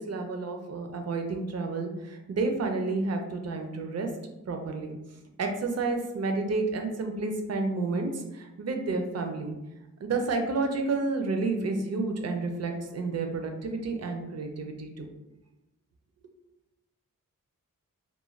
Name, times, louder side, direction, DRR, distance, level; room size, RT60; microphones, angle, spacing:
voice 1, 0.0-4.1 4.5-5.0 5.4-9.6 10.0-15.1, right 3 dB, 50° right, 4 dB, 0.4 m, -30 dB
2.4 x 2.1 x 3.0 m, 0.97 s
wide cardioid pair, 90°, 33 cm